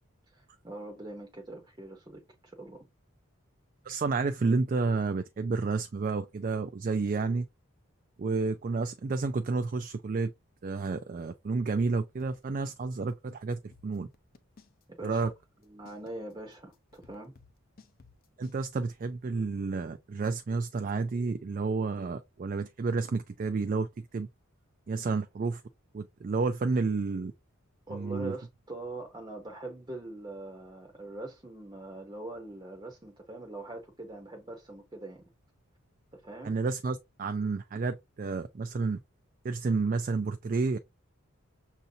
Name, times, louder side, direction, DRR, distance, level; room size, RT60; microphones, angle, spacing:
voice 1, 0.3-2.9 15.0-15.3 15.6-17.3 25.0-25.2 27.9-35.2 36.1-36.6, right 2 dB, 20° right, 0.7 m, -43 dB
voice 2, 3.8-7.5 8.2-10.3 10.6-14.1 15.0-15.3 18.4-24.3 24.9-25.6 25.9-27.3 27.9-28.4 36.4-39.0 39.4-40.8, right 4 dB, 40° right, 0.3 m, -30 dB
sound 1, 11.8-12.8 13.1-13.2 13.5-14.8 15.2-18.6, left 4 dB, 40° left, 0.6 m, -57 dB
6.5 x 2.7 x 2.7 m
head